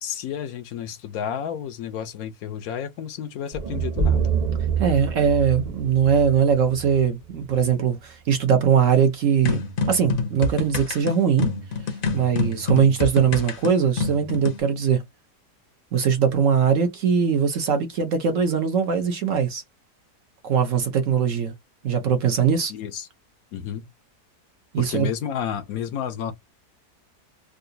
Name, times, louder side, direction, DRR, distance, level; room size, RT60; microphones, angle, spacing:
voice 1, 0.0-4.3 22.7-23.1 23.5-23.9 24.8-26.3, left 9 dB, 70° left, 1.0 m, -31 dB
sound 1, 3.5-7.7, right 6 dB, 85° right, 0.3 m, -26 dB
voice 2, 4.8-9.6 9.9-11.5 12.1-15.0 15.9-19.6 20.4-21.5 21.8-22.7 24.7-25.1, right 7 dB, 60° right, 0.9 m, -21 dB
sound 2, 9.4-14.6, left 4 dB, 50° left, 0.7 m, -27 dB
3.7 x 2.3 x 2.6 m
omnidirectional pair, 1.7 m